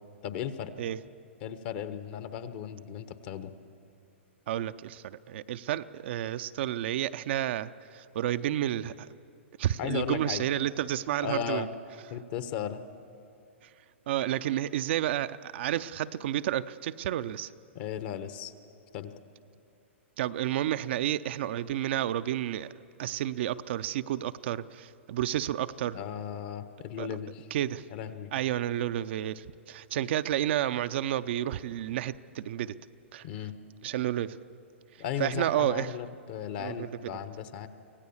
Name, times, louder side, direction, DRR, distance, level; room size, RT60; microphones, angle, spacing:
voice 1, 0.2-0.7 1.4-3.5 9.8-10.4 11.2-11.7 12.1-12.8 17.7-18.5 18.9-19.1 25.9-27.5 27.9-28.3 33.2-33.5 35.0-37.7, left 9 dB, 50° left, 11 dB, 1.2 m, -36 dB
voice 2, 4.5-9.1 9.6-11.7 14.1-17.5 20.2-22.7 23.0-26.0 27.0-27.1 27.5-27.8 28.3-32.7 33.1-33.2 33.8-34.4 35.2-35.9 36.6-37.1, right 12 dB, 60° right, 11 dB, 0.6 m, -31 dB
24.5 x 17.0 x 7.2 m, 2.6 s
hypercardioid pair, 120°, 7 cm